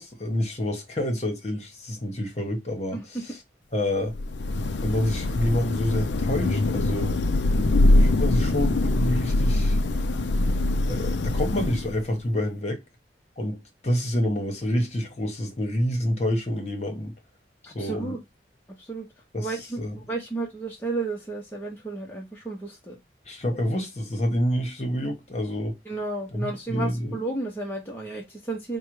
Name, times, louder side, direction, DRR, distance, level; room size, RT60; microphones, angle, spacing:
voice 1, 0.0-3.0 3.7-4.1 4.8-7.1 7.9-9.8 10.9-12.8 13.4-17.1 17.7-18.1 19.3-19.5 19.8-19.9 23.3-25.8 26.3-27.1, left 1 dB, 35° left, 1.1 m, -28 dB
voice 2, 2.9-3.2 17.6-18.2 18.7-19.1 19.4-23.0 23.5-23.6 25.8-28.8, right 3 dB, 10° left, 0.8 m, -33 dB
Thunder / Rain, 4.1-12.1, left 2 dB, 80° left, 0.5 m, -23 dB
4.8 x 2.2 x 4.7 m
head